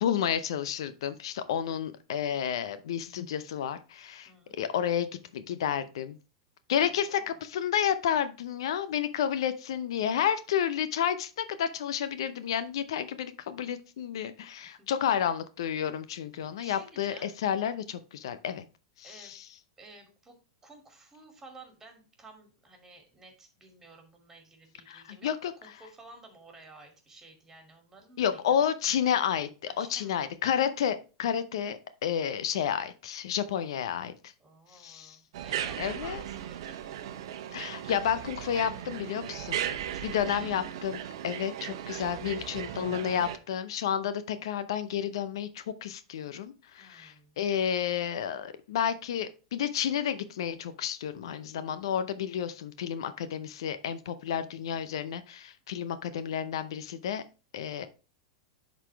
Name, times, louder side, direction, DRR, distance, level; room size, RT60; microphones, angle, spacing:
voice 1, 0.0-4.3 4.6-6.2 6.7-18.6 19.0-19.4 24.9-25.5 28.2-34.3 34.7-35.2 35.8-36.2 37.5-39.6 40.0-57.2 57.5-57.9, left 9 dB, 75° left, 13 dB, 0.6 m, -31 dB
voice 2, 4.3-4.6 6.8-7.4 14.6-15.2 16.6-17.3 19.0-19.4 19.8-25.3 25.6-28.4 29.7-30.8 34.4-36.8 39.9-40.6 46.8-47.4, right 2 dB, 15° right, 4 dB, 2.6 m, -53 dB
sound 1, 35.3-43.4, right 10 dB, 70° right, 0.9 m, -37 dB
11.0 x 4.1 x 3.3 m, 0.32 s
hypercardioid pair, 115°, 3 cm